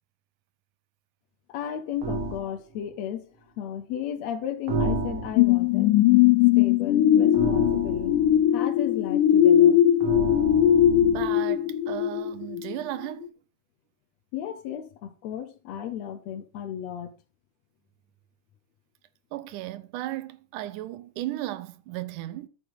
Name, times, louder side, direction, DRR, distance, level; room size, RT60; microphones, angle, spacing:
voice 1, 1.5-3.3 3.6-5.9 6.6-8.1 8.5-9.8 14.3-17.2, left 9 dB, 70° left, 1.8 m, -34 dB
sound 1, 2.0-2.4 4.7-5.6 7.3-8.4 10.0-11.4, right 2 dB, 50° right, 2.1 m, -30 dB
sound 2, 5.4-12.7 13.2-13.3, left 11 dB, 90° left, 2.2 m, -20 dB
voice 2, 11.0-13.3 19.3-22.5, right 14 dB, 85° right, 2.3 m, -35 dB
13.0 x 6.5 x 3.8 m
omnidirectional pair, 3.6 m